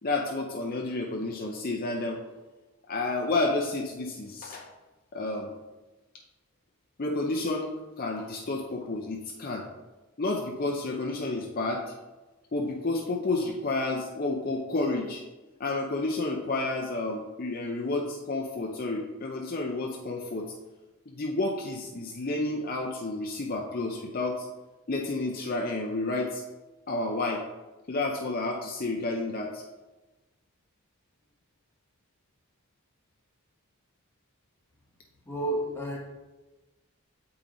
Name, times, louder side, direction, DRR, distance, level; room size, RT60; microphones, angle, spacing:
voice 1, 0.0-2.2 2.9-4.7 5.1-5.5 7.0-7.7 8.0-9.7 10.2-11.9 12.5-15.2 15.6-20.5 21.1-24.5 24.9-26.4 26.9-27.4 27.9-29.6, left 2 dB, 40° left, 0 dB, 0.6 m, -30 dB
voice 2, 35.2-36.0, right 1 dB, 10° left, -2 dB, 1.2 m, -30 dB
8.3 x 4.9 x 3.9 m, 1.1 s
head